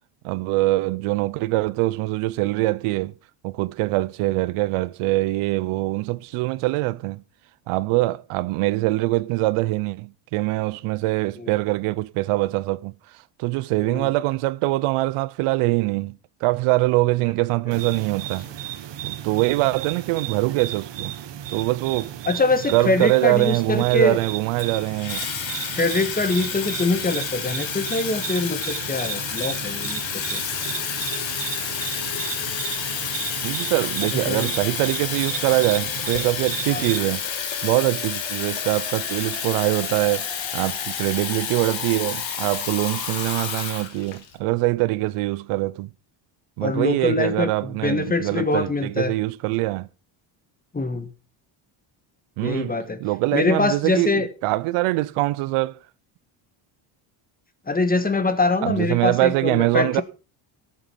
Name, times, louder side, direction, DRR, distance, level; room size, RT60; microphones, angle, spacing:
voice 1, 0.2-3.1 3.4-7.2 7.7-12.9 13.4-18.4 19.0-21.1 21.5-22.1 22.7-25.3 33.4-37.2 37.6-40.3 40.5-45.9 46.6-49.9 52.4-52.7 53.0-55.8 58.6-60.0, right 19 dB, 85° right, 0.7 m, -23 dB
sound 1, 17.7-37.0, right 11 dB, 60° right, 1.6 m, -34 dB
voice 2, 22.2-24.2 25.7-30.4 34.1-34.5 36.7-36.9 46.6-49.1 50.7-51.1 52.4-53.0 53.3-54.3 57.7-60.0, left 3 dB, 15° left, 1.6 m, -24 dB
Water tap faucet / Fill (with liquid), 24.6-44.3, left 7 dB, 65° left, 3.3 m, -30 dB
13.5 x 7.7 x 5.8 m
cardioid pair, 105°, 50 cm